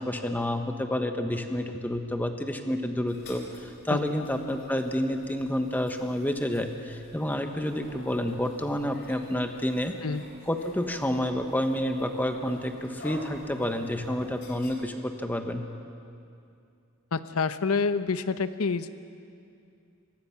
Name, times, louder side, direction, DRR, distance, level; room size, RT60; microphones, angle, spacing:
voice 1, 0.0-10.0 10.5-15.6, left 1 dB, 10° left, 5 dB, 1.1 m, -29 dB
sound 1, 3.1-14.8, left 1 dB, 55° left, 3.4 m, -49 dB
voice 2, 17.1-18.9, left 4 dB, 85° left, 12 dB, 0.8 m, -27 dB
25.0 x 19.5 x 5.9 m, 2.5 s
head